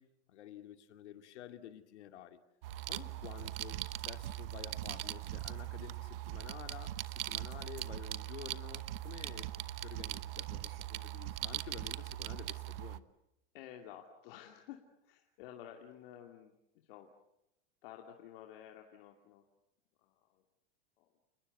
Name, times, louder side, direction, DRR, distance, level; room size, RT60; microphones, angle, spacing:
voice 1, 0.0-2.4 2.9-9.5 9.8-13.0, left 11 dB, 80° left, 2.5 m, -51 dB
sound 1, 2.6-13.0, right 15 dB, 55° right, 1.1 m, -41 dB
voice 2, 13.5-17.1 17.8-19.4 20.0-20.4 21.0-21.1, left 10 dB, 55° left, 2.6 m, -52 dB
29.5 x 21.0 x 8.2 m
supercardioid pair, 160°, 34 cm